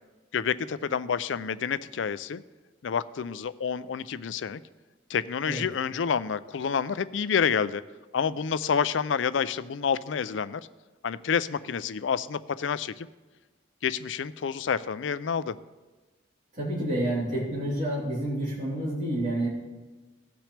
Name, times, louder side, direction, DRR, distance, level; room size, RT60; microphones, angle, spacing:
voice 1, 0.3-2.4 2.8-4.6 5.1-7.8 8.1-10.6 11.0-13.1 13.8-15.6, left 6 dB, 80° left, 15 dB, 0.4 m, -28 dB
voice 2, 16.5-19.5, right 1 dB, 45° right, -7 dB, 3.7 m, -29 dB
18.0 x 6.1 x 3.3 m, 1.3 s
head